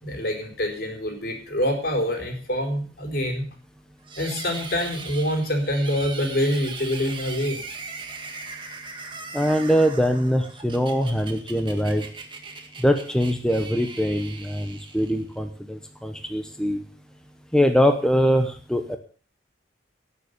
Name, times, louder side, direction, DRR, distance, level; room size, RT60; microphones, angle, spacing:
voice 1, 0.0-3.5 4.2-7.6, equal, 60° left, 3 dB, 4.3 m, -26 dB
sound 1, 4.1-15.4, right 4 dB, 30° right, 2.0 m, -39 dB
voice 2, 9.3-12.0 12.8-16.8 17.5-19.0, equal, 5° left, 6 dB, 1.0 m, -22 dB
18.0 x 7.2 x 6.7 m, 0.41 s
head